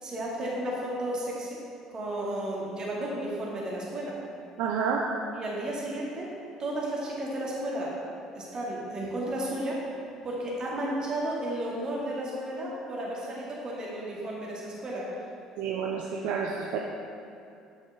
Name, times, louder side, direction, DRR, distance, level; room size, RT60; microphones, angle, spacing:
voice 1, 0.0-1.6 1.9-4.2 5.3-6.3 6.6-8.0 8.3-9.8 10.2-15.1, right 1 dB, 35° right, -4 dB, 2.0 m, -33 dB
voice 2, 4.6-5.1 15.6-16.8, right 6 dB, 60° right, 0 dB, 0.5 m, -29 dB
9.0 x 6.5 x 3.6 m, 2.5 s
figure-of-eight pair, 55°, 2 cm